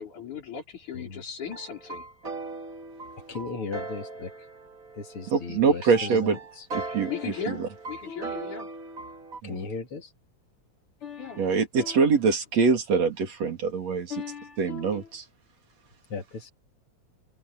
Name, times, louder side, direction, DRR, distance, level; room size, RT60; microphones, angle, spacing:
voice 1, 0.0-2.1 7.1-8.7 11.2-11.4 14.9-15.0, left 7 dB, 85° left, 7.0 m, -37 dB
sound 1, 1.4-9.4, right 3 dB, 30° right, 2.8 m, -39 dB
voice 2, 3.3-4.3 4.9-6.7 7.1-7.3 8.1-8.5 9.4-10.1 11.0-11.5 11.7-12.1 14.1-15.1 16.1-16.5, left 5 dB, 50° left, 3.1 m, -37 dB
voice 3, 5.3-6.4 6.7-7.7 9.4-9.6 11.4-14.1 14.6-15.2, right 5 dB, 60° right, 3.9 m, -24 dB
omnidirectional pair, 3.4 m